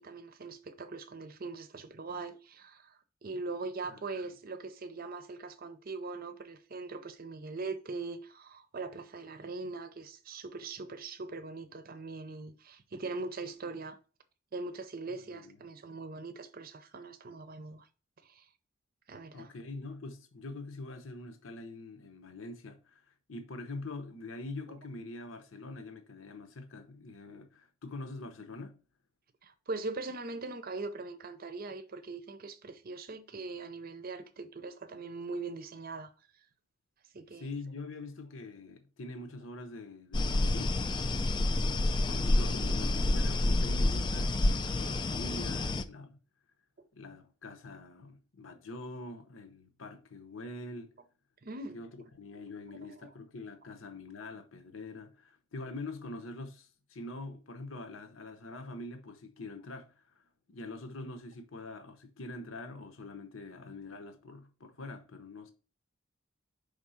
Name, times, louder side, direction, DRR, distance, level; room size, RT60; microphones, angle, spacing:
voice 1, 0.0-14.0 14.5-17.9 18.2-18.5 19.1-19.5 24.7-24.8 29.4-36.1 37.1-37.5 51.4-51.8 52.9-53.1, right 3 dB, 45° right, 0.6 m, -41 dB
voice 2, 3.9-4.3 15.3-15.4 19.3-28.8 37.4-40.8 41.6-46.2 46.9-50.9 51.7-51.9 52.2-65.5, left 2 dB, 70° left, 0.8 m, -44 dB
sound 1, 40.1-45.8, left 2 dB, 25° left, 0.4 m, -28 dB
5.1 x 3.6 x 5.5 m
head